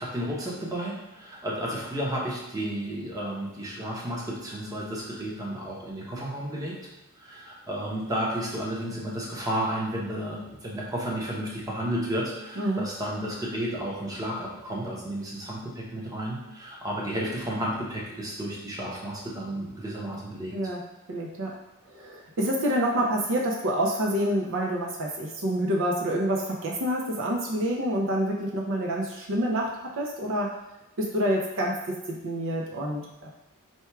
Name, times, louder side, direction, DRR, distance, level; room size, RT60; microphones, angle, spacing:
voice 1, 0.0-6.8 7.2-20.5, right 1 dB, 15° right, -4 dB, 0.9 m, -32 dB
voice 2, 21.1-21.6 21.9-30.5 31.0-33.3, equal, 60° right, -1 dB, 0.6 m, -27 dB
4.3 x 2.3 x 4.5 m, 0.98 s
head